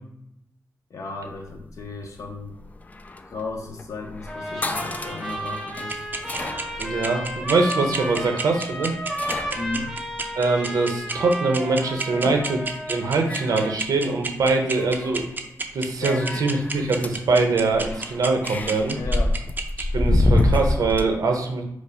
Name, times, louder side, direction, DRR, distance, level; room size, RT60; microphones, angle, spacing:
voice 1, 0.9-2.6 3.3-6.1 9.5-10.0 12.2-12.5 16.0-16.2 19.0-19.4, left 3 dB, 60° left, 2 dB, 0.9 m, -34 dB
sound 1, 1.3-11.0 12.4-12.7 13.1-14.4 14.7-15.3 16.0-21.0, left 2 dB, 25° left, 0.3 m, -28 dB
Trumpet, 4.3-13.4, equal, ahead, 0.9 m, -33 dB
sound 2, 5.9-19.8, right 3 dB, 30° right, 0.5 m, -29 dB
voice 2, 6.8-8.9 10.3-12.6 12.9-15.3 15.7-19.0 19.8-21.6, right 3 dB, 90° right, 3 dB, 0.8 m, -23 dB
5.3 x 2.1 x 4.9 m, 0.80 s
wide cardioid pair, 120°, 6 cm